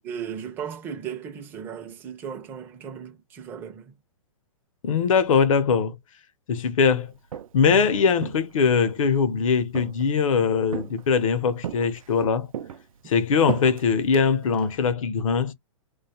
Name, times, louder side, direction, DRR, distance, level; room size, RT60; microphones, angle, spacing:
voice 1, 0.0-4.0, right 8 dB, 10° right, 0.4 m, -36 dB
voice 2, 4.8-5.9 6.5-7.1 7.5-12.5 13.1-15.5, left 5 dB, 70° left, 0.6 m, -21 dB
Walk footsteps, 7.1-7.7 8.2-9.2 9.7-10.3 10.7-11.3 11.6-12.2 12.5-14.8, right 9 dB, 75° right, 0.4 m, -35 dB
2.5 x 2.2 x 2.7 m
hypercardioid pair, 160°, 18 cm